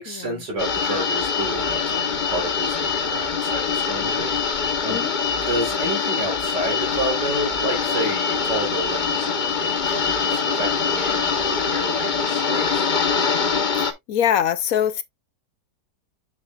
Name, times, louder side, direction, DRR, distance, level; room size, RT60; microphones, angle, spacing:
voice 1, 0.0-5.0 5.4-12.9, right 1 dB, 90° right, 4.4 m, -30 dB
sound 1, 0.6-13.9, left 5 dB, 40° left, 0.7 m, -24 dB
sound 2, 6.8-13.5, right 3 dB, 25° right, 1.4 m, -40 dB
voice 2, 13.8-15.0, left 9 dB, 65° left, 0.9 m, -22 dB
7.2 x 6.5 x 2.4 m
omnidirectional pair, 1.8 m